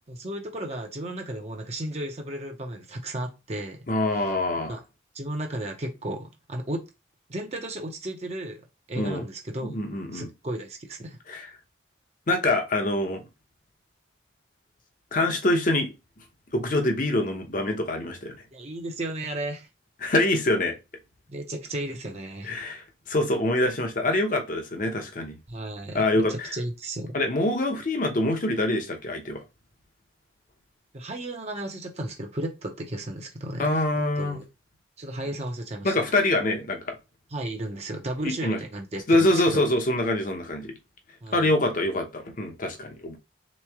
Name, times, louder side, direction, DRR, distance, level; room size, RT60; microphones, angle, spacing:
voice 1, 0.1-3.8 4.2-4.3 4.7-4.8 5.1-6.8 7.3-8.6 8.9-9.7 10.1-11.2 18.5-19.7 21.3-22.6 25.5-26.0 26.3-27.1 30.9-33.7 34.2-34.5 35.0-35.9 37.3-39.7 41.2-41.5, right 1 dB, 35° right, 0.6 m, -34 dB
voice 2, 3.9-4.8 8.9-9.2 9.6-10.3 11.3-11.5 12.3-13.2 15.1-15.9 16.5-18.3 20.0-20.7 22.4-25.4 25.9-26.5 27.1-29.4 33.6-34.4 35.8-37.0 38.2-38.6 39.1-40.7 41.3-43.2, left 1 dB, 45° left, 0.8 m, -25 dB
3.6 x 3.1 x 3.5 m
head